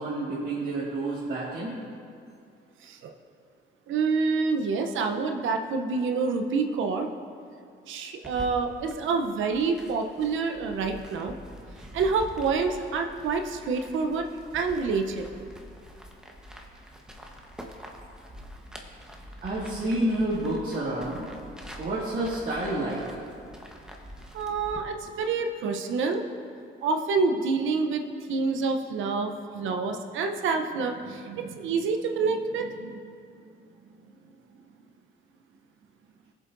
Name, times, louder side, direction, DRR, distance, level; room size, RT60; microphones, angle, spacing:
voice 1, 0.0-1.7 19.4-21.3 21.8-23.2, right 1 dB, 45° right, -9 dB, 2.0 m, -29 dB
voice 2, 3.9-7.1 7.9-11.3 11.9-14.3 14.5-15.4 24.3-26.2 26.8-28.0 28.3-33.1, right 4 dB, 80° right, 5 dB, 0.8 m, -27 dB
sound 1, 8.2-24.8, equal, 5° right, 1.1 m, -46 dB
16.5 x 7.5 x 2.6 m, 2.4 s
cardioid pair, 90°, 20 cm